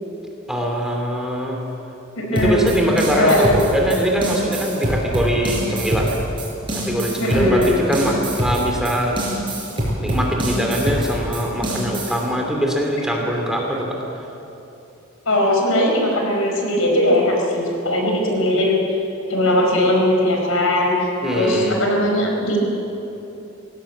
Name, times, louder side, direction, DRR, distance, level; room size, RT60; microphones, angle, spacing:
voice 1, 0.5-1.6 2.4-6.2 6.7-9.2 10.0-14.0 21.2-21.8, equal, 5° right, 0 dB, 2.9 m, -22 dB
voice 2, 2.2-2.6 3.1-3.6 7.2-8.0 15.2-18.8 19.3-20.9 21.3-22.6, left 1 dB, 85° left, 0 dB, 5.0 m, -19 dB
sound 1, 2.4-12.2, right 1 dB, 25° right, 5.8 m, -25 dB
19.5 x 17.0 x 8.6 m, 2.9 s
head